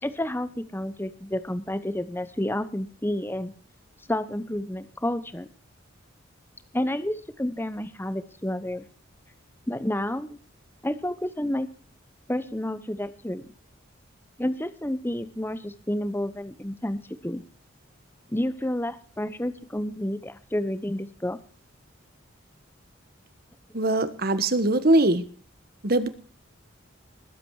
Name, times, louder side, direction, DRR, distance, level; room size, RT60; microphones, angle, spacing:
voice 1, 0.0-3.5 4.1-5.5 6.7-8.8 9.7-10.4 10.8-11.7 12.3-13.4 14.4-17.4 18.3-21.4, left 1 dB, 10° left, 12 dB, 1.0 m, -30 dB
voice 2, 23.7-25.2 25.8-26.1, right 2 dB, 50° right, 12 dB, 1.4 m, -21 dB
20.5 x 8.6 x 4.8 m, 0.43 s
head